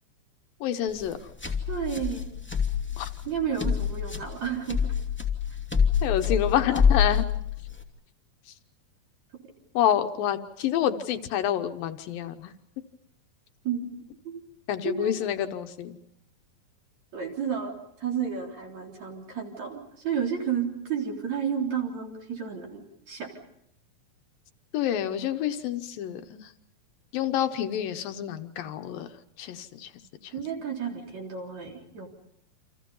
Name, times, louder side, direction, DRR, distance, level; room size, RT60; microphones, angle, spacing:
voice 1, 0.6-1.2 3.0-3.1 6.0-7.2 9.7-12.5 14.7-16.0 24.7-26.5 27.1-29.1 29.4-29.9 30.2-30.3, left 10 dB, 75° left, 7 dB, 2.8 m, -28 dB
sound 1, 0.9-7.8, left 7 dB, 5° left, 1.7 m, -26 dB
voice 2, 1.7-2.3 3.2-4.8 13.6-14.4 14.8-15.2 17.1-17.7 18.0-23.3 30.3-32.1, right 7 dB, 50° right, 1 dB, 4.8 m, -31 dB
29.0 x 27.5 x 5.5 m, 0.74 s
omnidirectional pair, 4.1 m